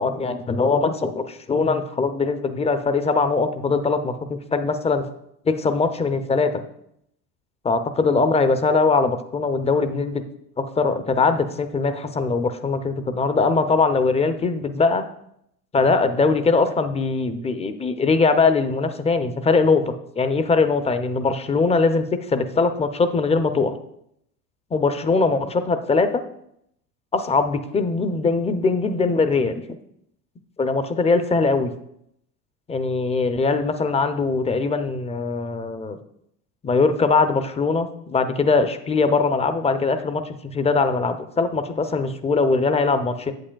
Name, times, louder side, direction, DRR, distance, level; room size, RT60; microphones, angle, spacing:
voice 1, 0.0-5.0 5.4-6.6 7.6-10.2 10.6-15.0 15.7-23.7 24.7-26.2 27.1-29.6 30.6-31.7 32.7-36.0 36.6-43.3, left 4 dB, 15° left, 10 dB, 0.5 m, -21 dB
8.2 x 7.7 x 2.3 m, 0.75 s
hypercardioid pair, 75°, 47 cm